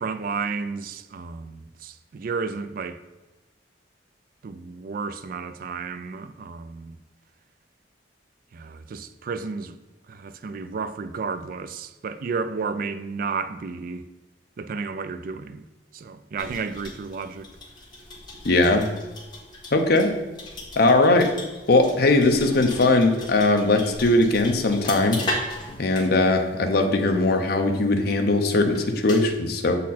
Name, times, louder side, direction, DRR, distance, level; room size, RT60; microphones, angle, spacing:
voice 1, 0.0-3.0 4.4-7.0 8.5-9.8 10.1-14.0 14.6-15.6 15.9-17.5, right 5 dB, 50° right, 0.4 m, -32 dB
sound 1, 16.4-29.4, left 1 dB, 25° left, 1.5 m, -38 dB
voice 2, 18.4-18.9 19.7-20.1 20.8-21.3 21.7-25.2 25.8-29.8, left 2 dB, 60° left, 0.7 m, -20 dB
7.3 x 4.2 x 4.2 m
head